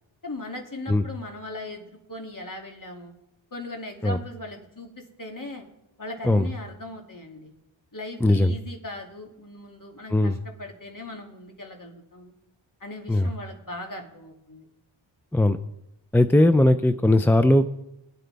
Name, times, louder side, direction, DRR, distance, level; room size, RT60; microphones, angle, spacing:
voice 1, 0.2-3.1 3.5-5.7 6.0-7.5 7.9-12.3 12.8-14.7, left 2 dB, 40° left, 1 dB, 2.6 m, -39 dB
voice 2, 8.2-8.5 10.1-10.4 13.1-13.3 15.3-15.6 16.1-17.7, left 1 dB, 5° left, 10 dB, 0.5 m, -19 dB
21.0 x 9.2 x 3.4 m, 0.87 s
cardioid pair, 50°, 50 cm